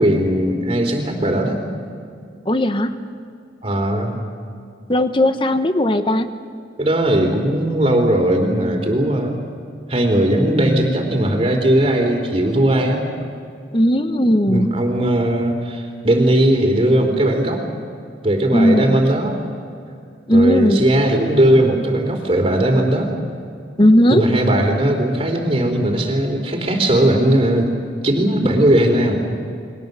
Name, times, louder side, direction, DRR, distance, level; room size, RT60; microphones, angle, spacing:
voice 1, 0.0-1.6 3.6-4.2 6.8-9.4 9.9-13.1 14.5-17.6 18.2-19.4 20.3-23.1 24.1-27.7 28.0-29.2, right 1 dB, 30° right, 3 dB, 3.6 m, -18 dB
voice 2, 2.5-2.9 4.9-6.3 13.7-14.7 18.5-19.0 20.3-20.8 23.8-24.2, equal, 25° left, 9 dB, 1.2 m, -16 dB
29.5 x 22.5 x 6.8 m, 2.4 s
head